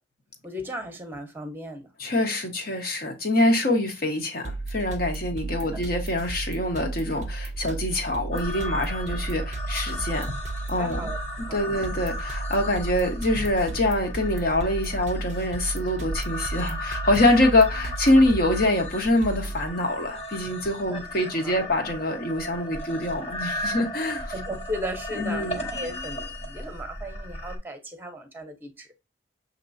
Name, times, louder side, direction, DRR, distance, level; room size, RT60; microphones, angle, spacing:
voice 1, 0.4-1.9 5.7-5.8 10.8-11.8 20.9-21.6 24.3-28.9, equal, 10° right, 0.9 m, -36 dB
voice 2, 2.0-10.3 10.7-11.0 11.5-24.3 25.1-26.0, left 1 dB, 55° left, 1.1 m, -25 dB
sound 1, 4.4-19.7, right 2 dB, 40° right, 0.5 m, -34 dB
sound 2, 8.3-27.6, left 1 dB, 35° left, 0.9 m, -36 dB
6.7 x 2.9 x 2.6 m
head